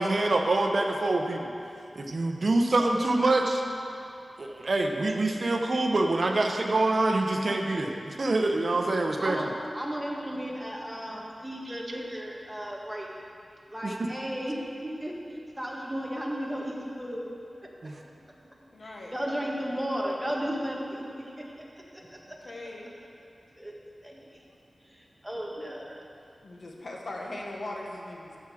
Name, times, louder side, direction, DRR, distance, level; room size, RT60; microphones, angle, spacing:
voice 1, 0.0-1.5 2.0-3.6 4.4-9.5 11.7-11.8 13.8-13.9 17.8-17.9, right 2 dB, 55° right, 3 dB, 0.8 m, -25 dB
voice 2, 9.7-13.1 13.7-17.3 17.6-17.7 18.0-18.1 18.8-21.5 21.9-22.4 23.6-23.7 24.0-24.2 24.9-26.0, equal, 5° right, -2 dB, 1.4 m, -34 dB
voice 3, 18.7-19.1 22.3-22.9 26.4-28.4, left 1 dB, 65° left, -1 dB, 1.4 m, -39 dB
14.0 x 4.9 x 6.3 m, 2.6 s
wide cardioid pair, 100°, 0 cm